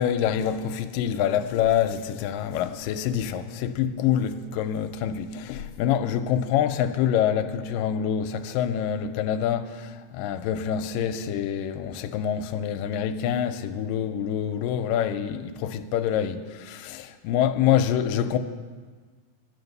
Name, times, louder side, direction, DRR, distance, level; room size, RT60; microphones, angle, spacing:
voice 1, 0.0-18.4, left 9 dB, 80° left, 2.1 m, -26 dB
11.5 x 9.9 x 6.7 m
omnidirectional pair, 4.2 m